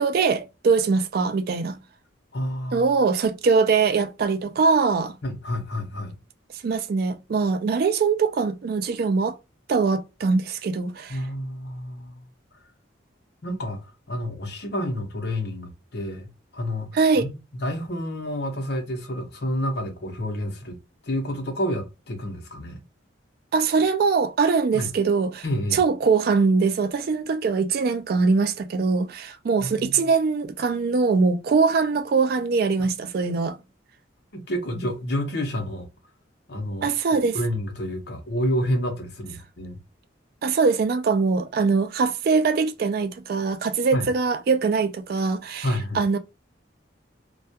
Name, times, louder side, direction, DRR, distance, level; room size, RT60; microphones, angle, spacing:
voice 1, 0.0-1.8 2.7-5.1 6.6-9.4 9.7-11.2 16.9-17.3 23.5-25.4 25.7-33.6 36.8-37.4 40.4-45.7 45.9-46.2, right 4 dB, 50° right, 0.3 m, -22 dB
voice 2, 2.3-2.9 5.2-6.1 11.1-12.2 13.4-17.3 17.6-20.8 21.0-22.8 24.7-24.9 25.4-25.8 29.6-30.0 34.3-35.9 36.5-39.8 43.9-44.1 45.6-46.0, equal, 55° left, 0.7 m, -29 dB
2.3 x 2.2 x 2.7 m
head